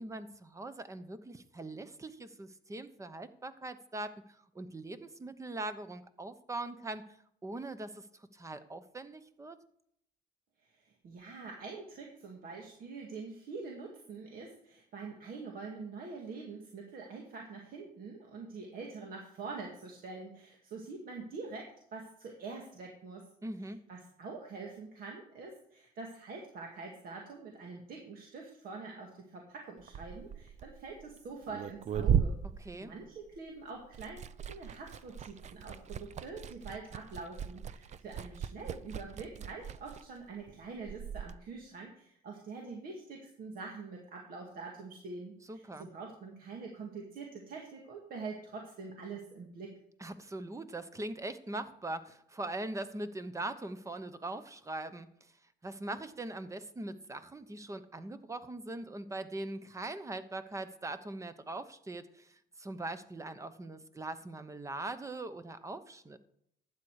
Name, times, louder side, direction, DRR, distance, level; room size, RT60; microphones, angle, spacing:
voice 1, 0.0-7.0 7.4-9.6 23.4-23.8 32.6-32.9 45.5-45.9 50.0-55.1 55.6-66.2, right 2 dB, 20° right, 12 dB, 0.9 m, -41 dB
voice 2, 10.6-23.3 23.6-49.7, right 4 dB, 60° right, 1 dB, 2.1 m, -45 dB
Liquid, 29.8-33.5 33.8-41.3, right 8 dB, 45° right, 0.6 m, -36 dB
12.0 x 8.8 x 4.8 m, 0.72 s
cardioid pair, 110°, 17 cm